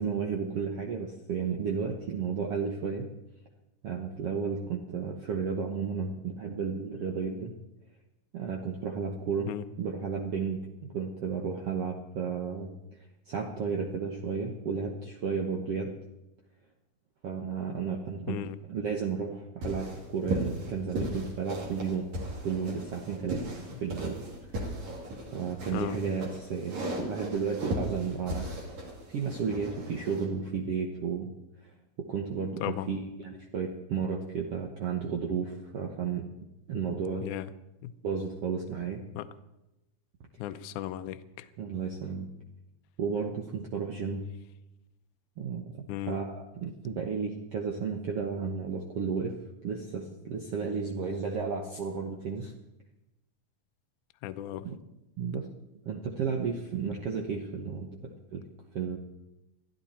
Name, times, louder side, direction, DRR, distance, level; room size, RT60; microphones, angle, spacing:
voice 1, 0.0-3.1 3.8-7.5 8.3-9.5 9.8-12.8 13.2-15.9 17.2-22.1 22.4-24.8 25.2-28.5 29.1-31.3 31.6-36.3 36.7-37.3 38.0-39.0 41.6-42.3 43.0-44.3 45.4-52.5 54.6-54.7 55.2-55.5 55.8-58.5 58.7-59.0, right 6 dB, 70° right, 1 dB, 1.4 m, -33 dB
sound 1, 19.6-30.3, right 1 dB, 50° right, 4.2 m, -36 dB
voice 2, 40.4-41.5 45.9-46.2 54.2-54.7, left 12 dB, 80° left, 10 dB, 1.8 m, -35 dB
23.0 x 14.0 x 4.3 m, 0.95 s
omnidirectional pair, 4.4 m